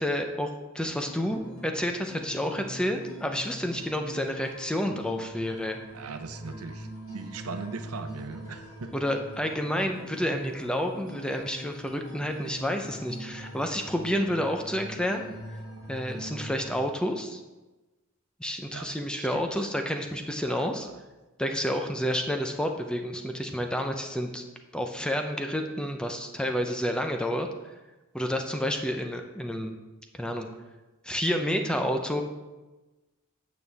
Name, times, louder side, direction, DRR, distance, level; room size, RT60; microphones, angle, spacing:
voice 1, 0.0-5.8 8.9-15.2 15.9-17.4 18.4-20.9 21.4-24.4 24.7-27.7 28.1-29.7 30.1-30.5 31.0-32.2, equal, 5° left, 4 dB, 0.5 m, -30 dB
sound 1, 0.8-16.8, equal, 70° left, 2.0 m, -43 dB
voice 2, 5.9-8.9 18.7-19.7 20.4-20.9, right 4 dB, 90° right, 8 dB, 0.7 m, -40 dB
8.5 x 7.0 x 3.4 m, 1.1 s
head